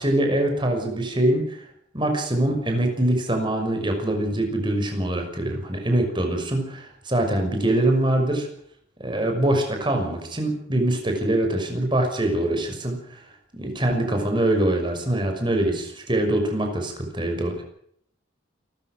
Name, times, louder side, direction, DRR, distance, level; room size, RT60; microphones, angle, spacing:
voice 1, 0.0-1.6 1.9-8.5 9.0-13.0 13.5-17.6, right 1 dB, 25° right, 4 dB, 6.0 m, -23 dB
28.5 x 14.0 x 6.5 m, 0.68 s
head